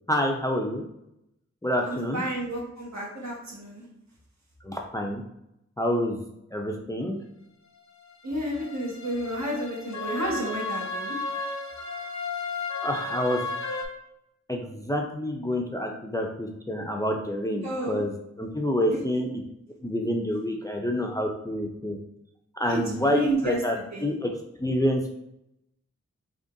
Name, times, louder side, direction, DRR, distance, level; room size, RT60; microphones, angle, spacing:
voice 1, 0.1-0.8 1.6-2.2 4.6-5.2 5.8-6.2 6.5-7.2 12.8-13.4 14.5-19.3 19.8-22.0 22.6-24.3 24.6-25.1, equal, 10° left, 2 dB, 0.4 m, -27 dB
voice 2, 1.9-3.9 8.2-11.2 17.6-18.0 18.9-19.0 22.7-23.6 23.9-24.1, equal, 70° right, -3 dB, 1.3 m, -31 dB
sound 1, 8.1-13.9, left 3 dB, 80° left, 0.7 m, -34 dB
3.7 x 3.4 x 2.6 m, 0.82 s
wide cardioid pair, 85°, 29 cm